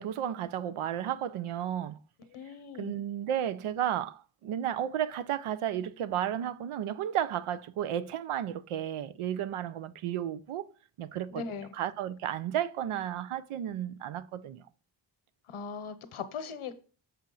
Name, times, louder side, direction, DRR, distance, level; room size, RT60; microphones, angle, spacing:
voice 1, 0.0-2.0 2.8-10.7 11.0-11.4 11.7-14.6, right 10 dB, 85° right, 0.6 m, -33 dB
voice 2, 2.3-3.0 11.3-11.7 15.5-16.8, left 5 dB, 85° left, 0.9 m, -39 dB
7.0 x 4.4 x 3.8 m
cardioid pair, 40°, 49 cm